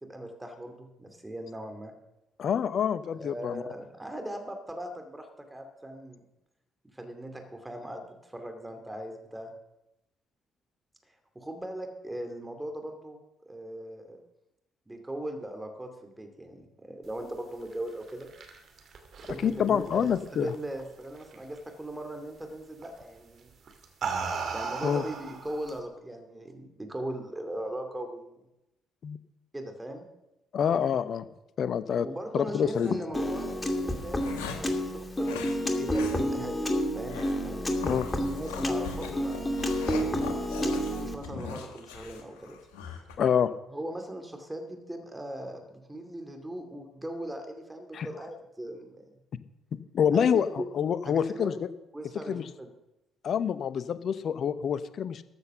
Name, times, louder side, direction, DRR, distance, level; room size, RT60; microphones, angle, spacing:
voice 1, 0.0-1.9 3.1-6.2 6.9-9.5 11.3-13.2 13.5-14.2 14.9-18.3 19.2-23.5 24.5-28.4 29.5-30.1 32.0-36.6 36.9-39.6 40.6-42.6 43.7-49.0 50.1-50.7 51.0-51.5 51.9-52.7, right 1 dB, 15° right, 5 dB, 2.4 m, -39 dB
voice 2, 2.4-3.6 19.4-20.5 24.8-25.0 29.0-29.2 30.5-31.3 31.6-32.1 32.3-33.0 37.8-38.1 43.2-43.5 47.9-48.1 49.9-51.7 52.3-52.5 53.2-55.2, left 8 dB, 50° left, 14 dB, 0.8 m, -27 dB
sound 1, 17.9-20.8 21.2-21.6 22.8-23.0 23.7-25.8, right 5 dB, 50° right, 2.3 m, -36 dB
sound 2, 32.6-32.9 33.6-34.8 35.2-35.6 35.9-36.2 36.5-36.6 37.1-37.4 37.8-43.2, left 6 dB, 75° left, 1.6 m, -40 dB
Piano, 33.1-41.1, equal, 20° left, 2.4 m, -30 dB
13.5 x 8.0 x 6.7 m, 0.90 s
figure-of-eight pair, 45°, 0 cm